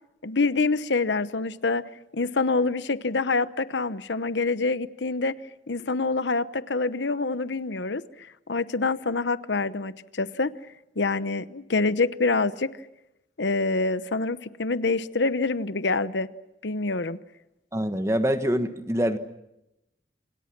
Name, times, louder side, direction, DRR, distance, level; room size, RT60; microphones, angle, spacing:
voice 1, 0.2-1.8 2.1-5.3 5.7-10.5 11.0-12.7 13.4-16.3 16.6-17.2, left 3 dB, 80° left, 14 dB, 1.0 m, -26 dB
voice 2, 17.7-19.2, equal, 15° right, 9 dB, 1.3 m, -25 dB
29.0 x 26.5 x 6.1 m, 0.87 s
head